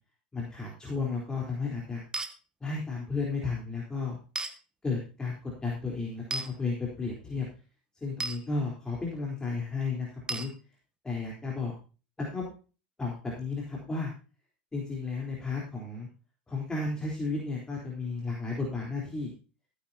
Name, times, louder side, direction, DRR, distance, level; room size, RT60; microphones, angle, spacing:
voice 1, 0.3-2.0 2.6-4.2 4.8-7.5 8.0-10.5 11.0-11.7 12.3-12.5 13.0-14.1 14.7-16.1 16.5-19.3, left 4 dB, 15° left, -3 dB, 3.9 m, -33 dB
sound 1, 2.1-2.3 4.4-4.5 6.3-6.5 8.2-8.4 10.3-10.5, right 3 dB, 15° right, 1.4 m, -33 dB
14.5 x 9.7 x 2.9 m, 0.34 s
hypercardioid pair, 85°, 5 cm